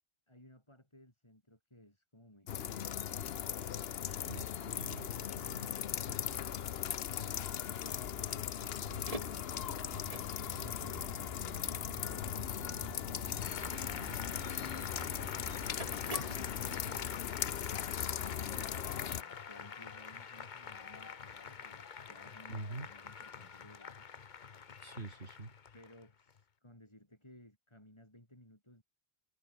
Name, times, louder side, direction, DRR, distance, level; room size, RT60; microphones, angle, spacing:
voice 1, 0.3-3.4 6.0-6.4 7.2-9.7 10.3-12.6 18.1-24.1 25.7-28.8, left 1 dB, 25° left, 6.1 m, -58 dB
sound 1, 2.5-19.2, left 9 dB, 70° left, 1.0 m, -38 dB
voice 2, 4.2-5.7 22.5-22.9 24.8-25.5, right 2 dB, 80° right, 3.8 m, -45 dB
sound 2, 8.9-17.1, right 1 dB, 35° right, 8.0 m, -47 dB
Applause, 13.4-26.4, left 6 dB, 50° left, 1.0 m, -47 dB
omnidirectional pair, 1.1 m